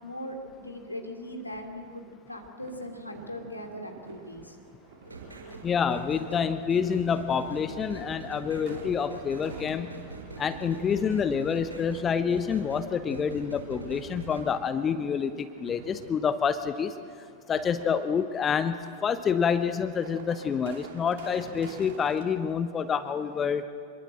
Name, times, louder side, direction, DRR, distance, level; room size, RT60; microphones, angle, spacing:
voice 1, 0.0-4.6 8.8-8.9, equal, 85° left, 3 dB, 3.0 m, -39 dB
sound 1, 2.6-22.3, right 4 dB, 55° right, 2.9 m, -50 dB
sound 2, 5.0-14.4, right 4 dB, 75° right, 5.9 m, -43 dB
voice 2, 5.6-9.9 10.4-16.9 17.5-23.6, left 7 dB, 25° left, 12 dB, 0.9 m, -27 dB
26.5 x 22.0 x 7.8 m, 2.3 s
figure-of-eight pair, 90°, 0 cm